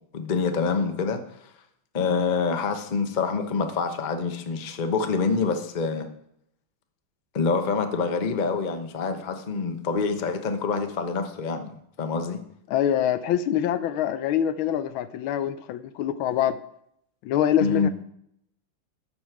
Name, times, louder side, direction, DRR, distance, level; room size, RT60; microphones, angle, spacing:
voice 1, 0.1-1.2 1.9-6.1 7.3-11.7 12.0-12.4 17.6-17.9, left 4 dB, 40° left, 6 dB, 0.7 m, -26 dB
voice 2, 12.7-16.6 17.2-17.9, left 10 dB, 80° left, 14 dB, 1.4 m, -24 dB
12.0 x 7.5 x 4.7 m, 0.73 s
omnidirectional pair, 2.3 m